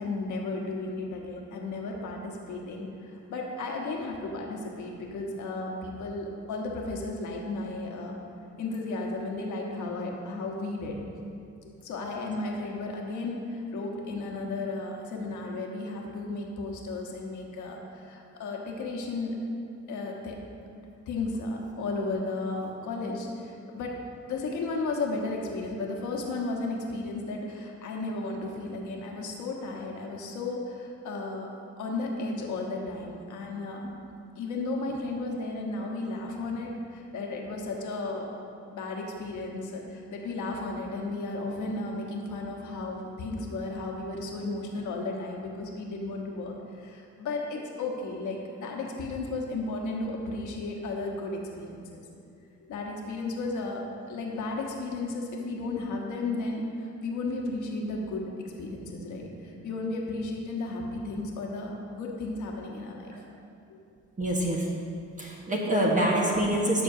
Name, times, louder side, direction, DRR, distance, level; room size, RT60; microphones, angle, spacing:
voice 1, 0.0-8.1 8.6-11.0 11.8-19.4 19.9-20.4 20.7-24.0 24.3-31.5 31.8-33.9 34.4-38.3 38.7-52.0 52.7-58.3 58.6-63.1, left 2 dB, 75° left, 0 dB, 1.3 m, -34 dB
voice 2, 64.2-64.7 65.2-66.8, right 1 dB, 25° right, -3 dB, 1.3 m, -25 dB
12.5 x 6.3 x 2.7 m, 2.5 s
cardioid pair, 90°, 30 cm